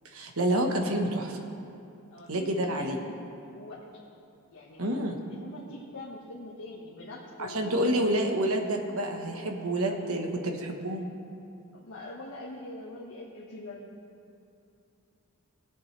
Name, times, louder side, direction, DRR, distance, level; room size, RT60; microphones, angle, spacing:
voice 1, 0.1-1.4 2.3-3.0 4.8-5.2 7.4-11.1, right 1 dB, 70° right, 3 dB, 1.3 m, -28 dB
voice 2, 2.1-3.2 3.5-4.0 4.5-4.9 5.3-8.0 9.6-10.0 11.7-13.9, left 2 dB, 70° left, -6 dB, 1.5 m, -43 dB
20.0 x 7.9 x 3.3 m, 2.6 s
head